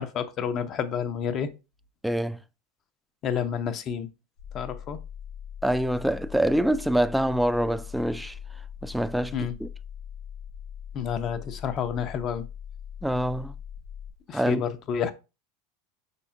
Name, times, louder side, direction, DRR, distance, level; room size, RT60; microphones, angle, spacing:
voice 1, 0.0-1.5 3.2-4.1 4.5-5.0 9.3-9.5 10.9-12.5 14.3-15.1, left 7 dB, 40° left, 0.6 m, -29 dB
voice 2, 2.0-2.4 5.6-8.3 8.8-9.3 9.6-9.7 13.0-13.5 14.3-14.6, right 1 dB, 5° right, 0.3 m, -25 dB
sound 1, 4.4-14.1, left 8 dB, 80° left, 2.3 m, -41 dB
5.3 x 4.1 x 2.4 m
figure-of-eight pair, 80°, 0 cm